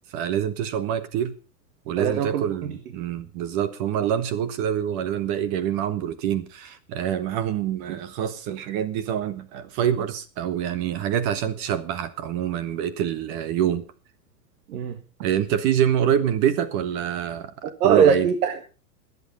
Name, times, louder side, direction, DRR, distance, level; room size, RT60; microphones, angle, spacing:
voice 1, 0.1-1.3 1.9-13.8 15.2-17.5 17.8-18.3, right 10 dB, 40° right, 1.4 m, -26 dB
voice 2, 2.0-2.4 14.7-15.0 17.6-18.7, right 7 dB, 65° right, 1.8 m, -21 dB
21.0 x 8.3 x 5.4 m
hypercardioid pair, 130°, 48 cm